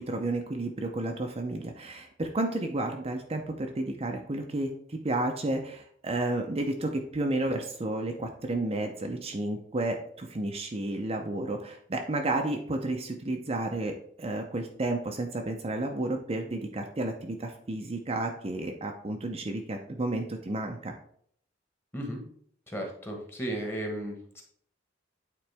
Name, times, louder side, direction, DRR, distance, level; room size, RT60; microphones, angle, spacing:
voice 1, 0.0-20.9, right 2 dB, 30° right, 3 dB, 0.5 m, -32 dB
voice 2, 22.7-24.4, right 1 dB, 10° left, 2 dB, 1.2 m, -35 dB
8.8 x 3.8 x 3.4 m, 0.63 s
head